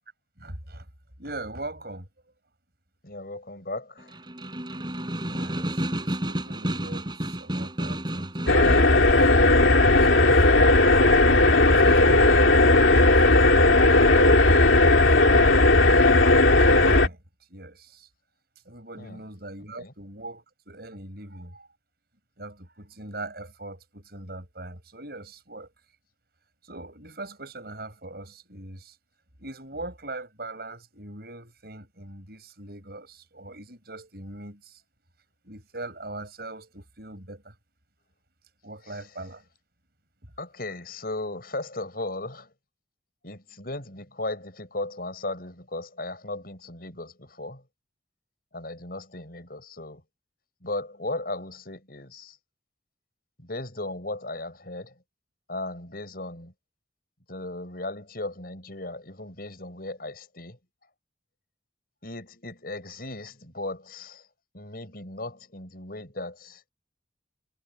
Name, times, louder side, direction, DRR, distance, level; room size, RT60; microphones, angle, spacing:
voice 1, 0.4-0.9 1.2-2.1 5.2-10.9 11.5-14.6 15.2-17.2 17.5-18.1 18.7-21.7 22.4-25.7 26.7-28.9 29.4-34.7 35.4-37.5 38.6-39.4, right 2 dB, 55° right, 7.5 m, -40 dB
voice 2, 3.0-4.2 19.0-19.3 19.8-19.9 38.8-39.3 40.4-42.5 43.2-47.6 48.5-50.0 50.6-52.4 53.4-54.9 55.5-56.5 57.3-60.6 62.0-64.3 64.5-66.7, left 2 dB, 55° left, 6.3 m, -36 dB
Snare drum, 4.0-9.0, right 1 dB, 25° right, 3.8 m, -31 dB
sound 1, 8.5-17.1, left 2 dB, 90° left, 2.4 m, -17 dB
head